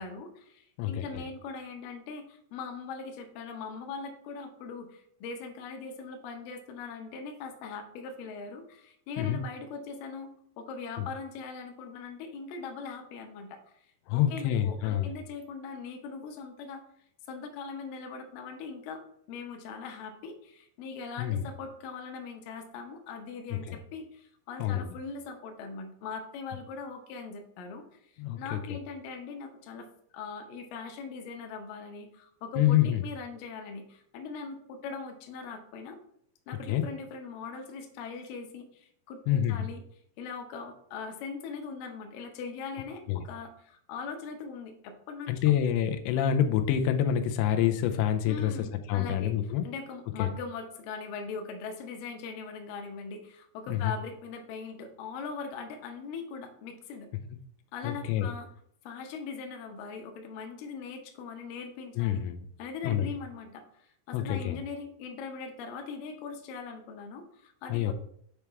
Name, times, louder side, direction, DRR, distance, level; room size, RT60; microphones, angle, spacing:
voice 1, 0.0-10.3 10.6-13.6 14.1-16.8 17.3-19.0 19.3-28.0 28.4-29.9 30.1-36.0 36.5-39.8 40.2-45.4 48.3-49.3 49.6-57.1 57.7-58.5 58.8-62.2 62.6-67.9, left 5 dB, 75° left, 4 dB, 2.2 m, -41 dB
voice 2, 0.8-1.2 9.2-9.4 11.0-11.1 14.1-15.1 21.2-21.5 23.5-23.8 24.6-25.0 28.2-28.8 32.6-33.0 36.7-36.8 39.3-39.7 43.1-43.2 45.3-49.7 50.2-50.3 53.7-53.9 57.8-58.3 62.0-62.4 62.8-63.1 64.1-64.6 67.7-67.9, left 10 dB, 90° left, 7 dB, 2.9 m, -27 dB
7.1 x 3.4 x 4.6 m, 0.67 s
omnidirectional pair, 5.0 m